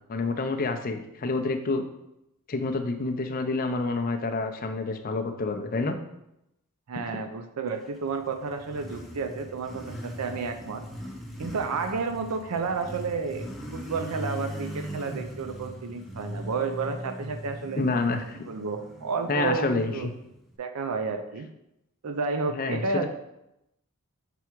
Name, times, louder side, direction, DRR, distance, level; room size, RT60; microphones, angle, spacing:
voice 1, 0.1-1.8 2.5-6.0 17.8-18.4 19.3-20.1 22.5-23.1, left 3 dB, 40° left, 5 dB, 0.5 m, -28 dB
voice 2, 6.9-10.8 11.4-17.8 18.4-20.1 20.6-21.5 22.0-23.1, right 4 dB, 80° right, 6 dB, 0.5 m, -31 dB
Motorcycle, 7.9-20.5, equal, ahead, 0.7 m, -40 dB
6.0 x 3.5 x 4.5 m, 0.86 s
head